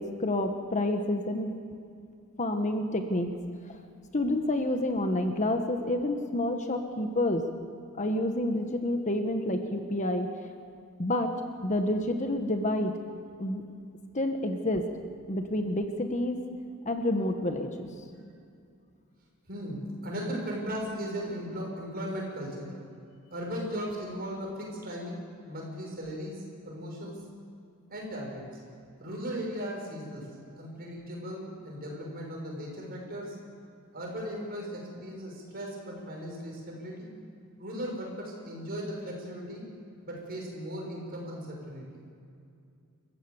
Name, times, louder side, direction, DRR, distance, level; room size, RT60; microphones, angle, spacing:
voice 1, 0.0-1.5 2.4-3.3 4.1-7.4 7.9-10.3 11.0-11.3 11.6-12.9 13.4-13.6 14.1-14.8 15.3-16.4 16.8-17.9, left 1 dB, 35° left, 5 dB, 1.3 m, -28 dB
voice 2, 19.5-22.8 23.3-27.2 27.9-28.5 29.0-30.3 30.6-33.4 33.9-37.1 37.6-39.6 40.0-42.0, equal, 45° right, -1 dB, 6.5 m, -37 dB
28.5 x 15.5 x 7.1 m, 2.4 s
head